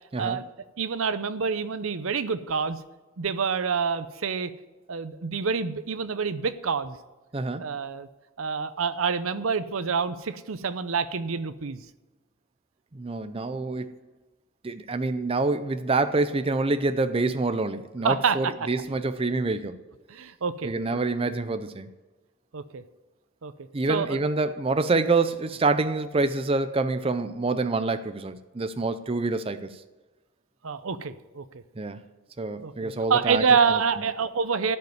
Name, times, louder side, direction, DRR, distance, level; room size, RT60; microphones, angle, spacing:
voice 1, 0.8-2.8 3.2-4.5 4.9-7.0 7.6-8.1 8.4-11.8 18.0-18.5 20.1-20.7 22.5-22.8 23.4-23.5 23.9-24.2 30.6-31.4 32.6-34.8, right 5 dB, 80° right, 0.7 m, -27 dB
voice 2, 7.3-7.6 12.9-14.0 14.6-19.8 20.6-21.9 23.7-29.7 31.8-32.0 32.4-33.8, right 3 dB, 25° right, 0.5 m, -26 dB
14.5 x 5.5 x 9.5 m
head